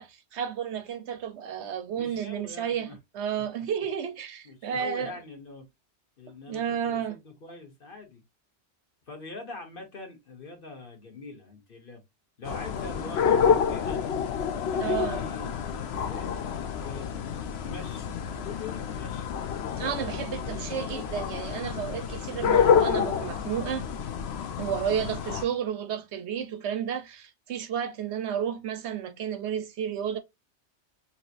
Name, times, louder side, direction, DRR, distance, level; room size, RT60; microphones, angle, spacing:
voice 1, 0.0-2.9 3.1-5.1 6.5-7.1 14.8-15.2 19.8-23.9 24.6-30.2, right 8 dB, 75° right, 1.0 m, -32 dB
voice 2, 2.0-3.0 4.4-5.7 6.2-8.2 9.1-12.0 12.4-14.0 14.6-16.4 16.7-18.1 18.4-19.4 24.0-24.3 25.4-25.6, left 3 dB, 50° left, 1.4 m, -43 dB
sound 1, 12.5-25.4, left 7 dB, 70° left, 0.9 m, -28 dB
5.7 x 2.9 x 2.5 m
omnidirectional pair, 1.2 m